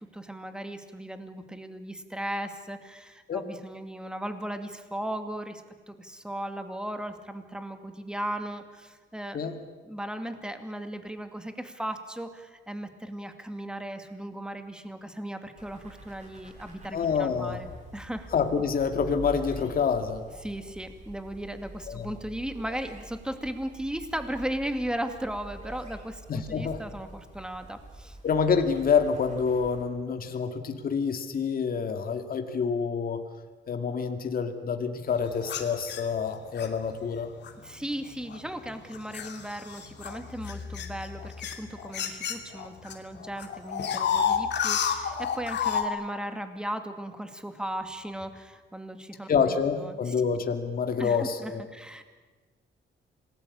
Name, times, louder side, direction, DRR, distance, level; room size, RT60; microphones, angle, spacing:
voice 1, 0.0-5.6 5.9-9.4 9.8-18.3 20.4-28.2 37.6-50.1 51.0-52.0, right 1 dB, 5° right, 7 dB, 2.4 m, -37 dB
sound 1, 15.5-29.8, right 1 dB, 40° right, 6.8 m, -46 dB
voice 2, 16.9-17.6 18.3-20.2 21.9-22.1 26.3-26.8 28.2-33.2 33.7-37.3 49.3-51.6, left 6 dB, 50° left, 6 dB, 2.2 m, -27 dB
sound 2, 35.4-36.7 37.4-37.7 38.3-42.9 43.2-45.9, left 8 dB, 65° left, 2.8 m, -30 dB
27.0 x 19.5 x 8.6 m, 1.3 s
cardioid pair, 105°, 19 cm